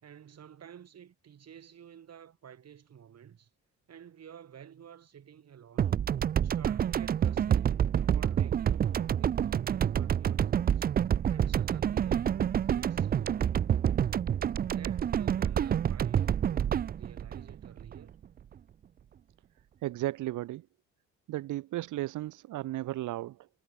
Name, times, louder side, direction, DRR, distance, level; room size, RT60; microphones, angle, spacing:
voice 1, 0.0-3.5 3.9-6.0 6.4-10.9 11.3-13.9 14.6-18.2, right 9 dB, 55° right, 5.0 m, -52 dB
sound 1, 5.8-18.2, right 9 dB, 30° right, 0.4 m, -28 dB
voice 2, 19.8-20.7 21.3-23.5, right 16 dB, 80° right, 1.2 m, -34 dB
cardioid pair, 90°, 30 cm